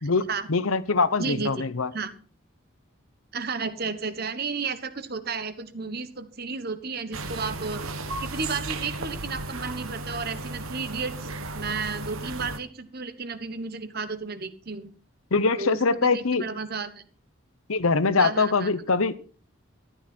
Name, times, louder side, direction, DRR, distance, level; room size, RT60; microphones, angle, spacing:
voice 1, 0.0-1.9 15.3-16.4 17.7-19.1, left 4 dB, 80° left, 15 dB, 0.9 m, -23 dB
voice 2, 1.2-1.7 1.9-2.1 3.3-14.9 15.6-17.0 18.2-18.7, right 4 dB, 45° right, 12 dB, 1.2 m, -33 dB
sound 1, 7.1-12.6, right 2 dB, 80° right, 1.3 m, -35 dB
14.0 x 12.0 x 4.4 m, 0.41 s
head